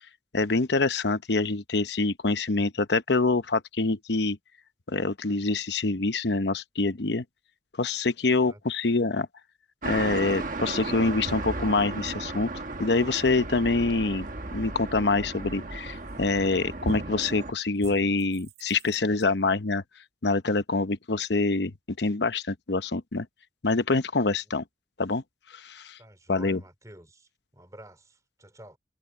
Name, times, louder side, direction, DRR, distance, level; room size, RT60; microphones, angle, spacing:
voice 1, 0.3-4.4 4.9-7.2 7.8-9.3 9.8-12.5 12.8-14.3 14.5-19.8 20.2-23.3 23.6-24.6 25.0-25.2 25.5-26.0 26.3-26.6, left 3 dB, 70° left, 0.9 m, -25 dB
voice 2, 8.2-8.6 24.4-24.6 26.0-28.8, right 1 dB, 20° right, 3.3 m, -50 dB
sound 1, 9.8-17.5, right 2 dB, 45° right, 1.2 m, -35 dB
sound 2, 16.1-16.5 16.8-17.3 17.8-19.2, right 1 dB, 65° right, 7.8 m, -39 dB
head